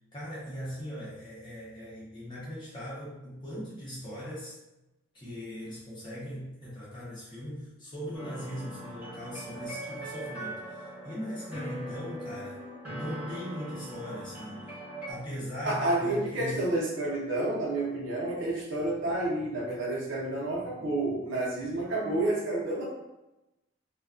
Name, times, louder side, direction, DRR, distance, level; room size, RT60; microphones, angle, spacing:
voice 1, 0.1-4.6 5.1-12.6 12.9-14.7 15.1-16.6, equal, 25° left, -9 dB, 0.7 m, -39 dB
sound 1, 8.1-15.1, right 1 dB, 10° right, 0.9 m, -41 dB
voice 2, 15.6-22.8, right 2 dB, 70° right, -5 dB, 0.7 m, -30 dB
2.3 x 2.2 x 2.4 m, 0.96 s
head